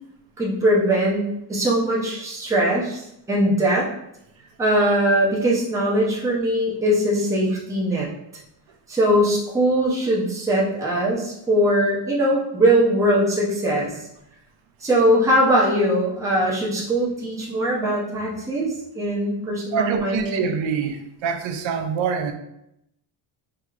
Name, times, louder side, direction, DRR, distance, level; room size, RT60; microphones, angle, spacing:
voice 1, 0.4-3.0 3.3-3.9 4.6-8.1 8.9-13.9 14.8-18.7 18.9-20.4, right 1 dB, 5° right, -6 dB, 0.6 m, -21 dB
voice 2, 19.7-22.3, right 6 dB, 70° right, 6 dB, 0.6 m, -25 dB
4.6 x 2.8 x 2.4 m, 0.79 s
cardioid pair, 175°, 47 cm